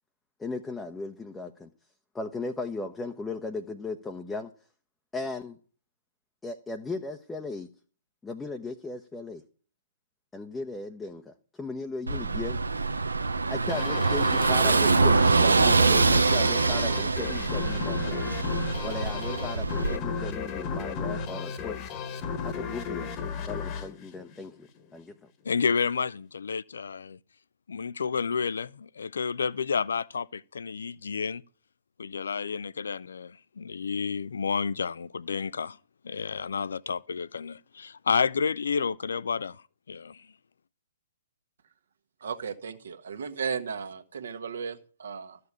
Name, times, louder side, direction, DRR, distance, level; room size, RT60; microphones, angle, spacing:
voice 1, 0.4-1.7 2.1-4.5 5.1-5.6 6.4-7.7 8.2-9.4 10.3-12.6 13.5-18.2 18.8-21.8 22.4-23.1 23.5-25.1, left 3 dB, 10° left, 0.9 m, -37 dB
Car passing by / Engine, 12.1-20.0, right 4 dB, 80° right, 0.8 m, -24 dB
sound 1, 13.7-24.9, left 5 dB, 30° left, 1.4 m, -34 dB
voice 2, 25.4-27.2 27.7-31.4 32.0-35.8 36.0-40.3, left 5 dB, 65° left, 0.5 m, -30 dB
voice 3, 42.2-45.4, right 6 dB, 60° right, 1.5 m, -35 dB
13.5 x 6.8 x 8.3 m
figure-of-eight pair, 125°, 0 cm